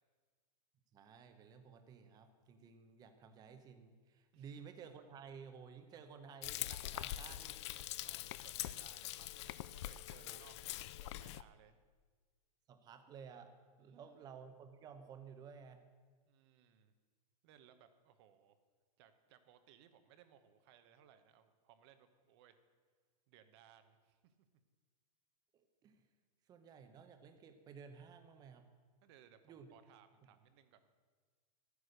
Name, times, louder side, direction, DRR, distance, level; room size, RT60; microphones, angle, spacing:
voice 1, 0.9-7.6 10.2-10.4 12.7-13.5 13.8-15.8 25.5-26.0 26.5-28.6 29.4-29.7, right 6 dB, 20° right, 8 dB, 0.9 m, -55 dB
Frying (food), 6.4-11.4, left 14 dB, 45° left, 0.4 m, -44 dB
voice 2, 8.0-11.8 13.8-14.2 16.3-16.9 17.4-18.6 19.0-22.6 23.3-24.3 29.0-30.9, right 9 dB, 40° right, 10 dB, 1.0 m, -65 dB
12.0 x 9.7 x 6.6 m, 1.5 s
supercardioid pair, 155°, 20 cm